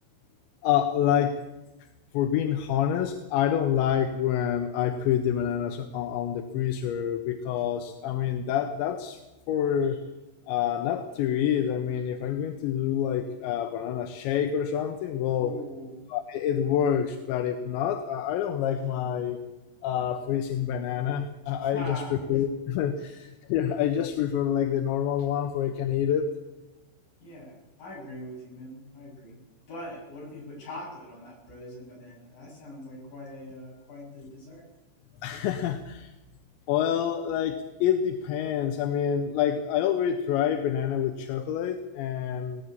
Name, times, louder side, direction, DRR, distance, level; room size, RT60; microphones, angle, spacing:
voice 1, 0.6-1.4 1.8-1.9 2.1-9.2 9.5-10.0 10.5-15.6 16.1-19.4 19.8-26.3 35.2-36.1 36.7-42.6, left 9 dB, 80° left, 7 dB, 3.3 m, -27 dB
voice 2, 15.4-16.1 21.6-22.4 27.2-29.4 29.7-34.6, left 1 dB, 45° left, -1 dB, 9.2 m, -42 dB
19.0 x 17.5 x 8.4 m, 1.1 s
omnidirectional pair, 5.5 m